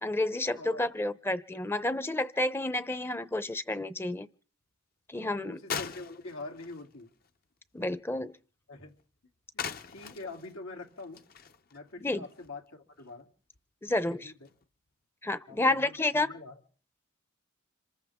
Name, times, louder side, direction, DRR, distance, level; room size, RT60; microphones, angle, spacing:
voice 1, 0.0-4.3 5.1-5.6 7.7-8.3 12.0-12.3 13.8-14.3 15.2-16.3, left 2 dB, 10° left, 0.7 m, -30 dB
voice 2, 5.2-7.1 8.7-8.9 9.5-11.2 11.7-13.3 14.1-14.5 15.5-16.6, left 3 dB, 85° left, 3.1 m, -45 dB
sound 1, 5.7-7.4 9.0-9.1 9.6-12.5 13.0-13.1 13.5-13.6 14.4-14.6, left 6 dB, 45° left, 0.8 m, -41 dB
26.5 x 14.0 x 3.7 m
head